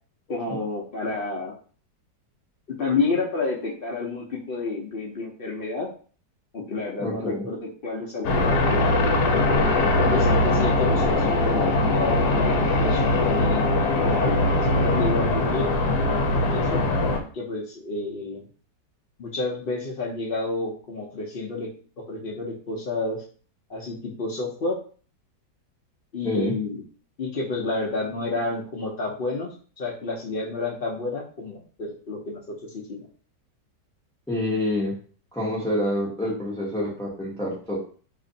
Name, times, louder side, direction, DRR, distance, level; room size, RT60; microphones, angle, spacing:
voice 1, 0.3-1.5 2.8-5.9 6.5-8.6 10.0-13.0 13.3-15.7 16.3-16.8 17.3-18.4 19.2-21.7 22.1-23.2 23.7-24.8 26.1-26.8 27.2-33.1, left 3 dB, 90° left, -3 dB, 0.5 m, -30 dB
voice 2, 7.0-7.5 26.2-26.5 34.3-34.9 35.3-37.8, left 1 dB, 5° left, -7 dB, 0.7 m, -27 dB
sound 1, 8.2-17.2, left 2 dB, 70° left, 1.1 m, -21 dB
2.9 x 2.5 x 3.9 m, 0.41 s
omnidirectional pair, 1.9 m